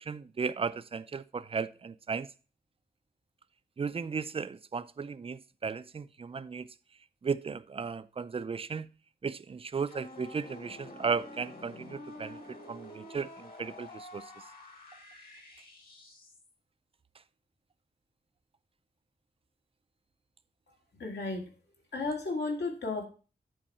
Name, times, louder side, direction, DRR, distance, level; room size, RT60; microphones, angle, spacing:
voice 1, 0.0-2.3 3.8-6.7 7.2-8.9 9.2-14.2, right 5 dB, 35° right, 0.4 m, -35 dB
sound 1, 9.8-16.5, left 2 dB, 55° left, 2.3 m, -49 dB
voice 2, 21.0-21.4 21.9-23.1, left 3 dB, 80° left, 2.1 m, -33 dB
10.5 x 4.7 x 4.1 m
wide cardioid pair, 150°, 18 cm